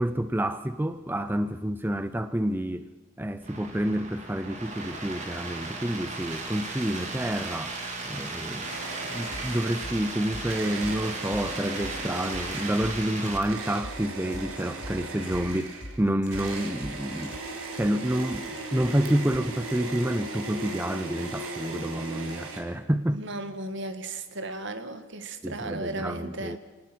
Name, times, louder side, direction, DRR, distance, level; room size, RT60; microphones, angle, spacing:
voice 1, 0.0-2.9 3.2-7.8 8.0-8.7 9.1-17.4 17.7-23.2 25.4-26.6, right 1 dB, 10° right, 10 dB, 0.6 m, -29 dB
sound 1, 3.4-13.4, right 3 dB, 35° right, 3.6 m, -36 dB
sound 2, 8.6-10.1 10.5-22.6, right 3 dB, 80° right, 4.5 m, -38 dB
sound 3, 9.2-19.6, equal, 55° left, 3.0 m, -42 dB
voice 2, 23.1-26.6, right 2 dB, 60° right, 9 dB, 1.9 m, -35 dB
25.5 x 19.0 x 6.2 m, 1.2 s
head